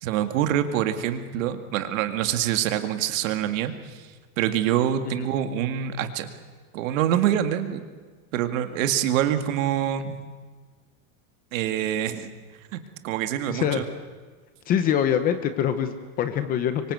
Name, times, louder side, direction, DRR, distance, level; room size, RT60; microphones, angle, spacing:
voice 1, 0.0-4.1 4.4-6.3 6.7-7.8 8.3-10.2 11.5-12.3 12.7-13.8, right 10 dB, 60° right, 8 dB, 2.2 m, -25 dB
voice 2, 13.5-13.8 14.7-16.9, left 9 dB, 20° left, 10 dB, 0.7 m, -24 dB
26.0 x 24.0 x 8.1 m, 1.5 s
supercardioid pair, 180°, 45 cm